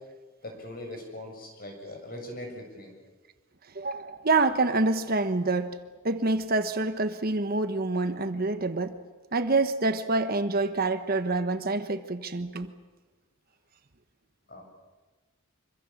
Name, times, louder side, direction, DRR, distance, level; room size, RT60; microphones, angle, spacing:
voice 1, 0.4-2.9 14.5-14.6, left 1 dB, 40° left, 6.9 m, -40 dB
voice 2, 3.7-5.8 6.0-9.0 9.3-12.7, right 3 dB, 45° right, 1.2 m, -26 dB
26.0 x 24.5 x 7.3 m
head